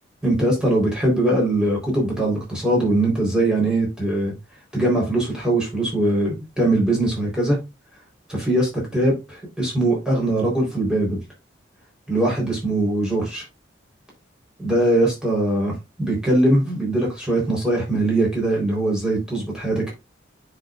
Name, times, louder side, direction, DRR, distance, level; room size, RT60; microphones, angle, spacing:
voice 1, 0.2-4.3 4.7-7.6 8.3-11.2 12.1-13.4 14.6-19.9, right 1 dB, 5° right, 3.6 m, -21 dB
9.5 x 5.4 x 2.4 m
head